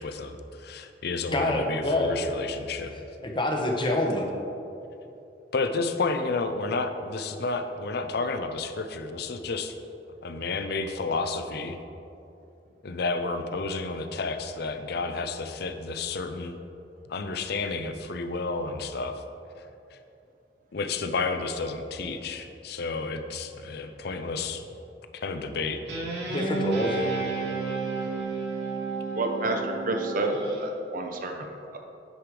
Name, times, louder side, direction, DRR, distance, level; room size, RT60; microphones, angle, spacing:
voice 1, 0.0-2.9 5.5-9.7 10.2-11.8 12.8-16.6 17.1-19.2 19.9-20.0 20.7-24.6 25.1-25.8, left 3 dB, 65° left, 8 dB, 0.6 m, -31 dB
voice 2, 1.3-2.1 3.2-4.3 26.3-27.1, left 1 dB, 30° left, 1 dB, 0.9 m, -26 dB
Guitar, 25.9-30.6, right 3 dB, 70° right, 1.8 m, -31 dB
voice 3, 29.2-31.8, right 2 dB, 50° right, 4 dB, 0.7 m, -29 dB
9.3 x 5.1 x 4.8 m, 2.8 s
head